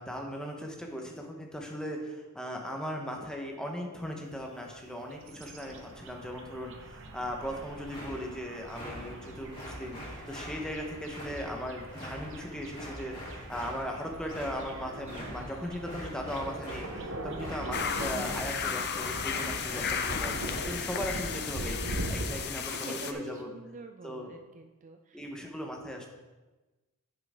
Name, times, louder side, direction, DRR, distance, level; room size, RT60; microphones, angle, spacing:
voice 1, 0.0-20.3 20.7-23.5 24.0-24.4 25.1-26.1, equal, 5° left, 1 dB, 1.1 m, -38 dB
sound 1, 4.7-22.5, right 1 dB, 60° right, 1.0 m, -42 dB
sound 2, 7.4-20.6, equal, 20° left, 3.1 m, -44 dB
sound 3, 17.7-23.1, left 6 dB, 50° left, 0.7 m, -34 dB
voice 2, 22.5-25.3, right 3 dB, 35° right, 5 dB, 0.4 m, -47 dB
9.6 x 6.9 x 3.7 m, 1.2 s
head